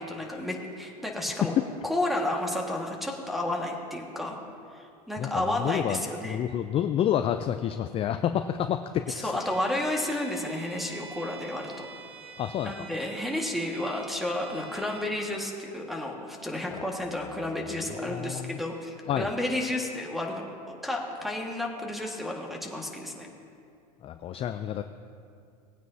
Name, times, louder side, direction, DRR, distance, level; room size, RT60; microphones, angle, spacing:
voice 1, 0.0-1.5 1.8-4.4 4.7-6.4 9.1-11.9 12.6-23.3, left 1 dB, ahead, 1 dB, 1.7 m, -31 dB
voice 2, 5.2-9.4 12.4-12.7 18.0-18.6 19.1-19.3 24.0-24.8, left 10 dB, 30° left, 9 dB, 0.4 m, -29 dB
Bowed string instrument, 9.3-15.1, right 5 dB, 25° right, 1.1 m, -46 dB
19.0 x 9.2 x 2.7 m, 2.4 s
hypercardioid pair, 105°, 21 cm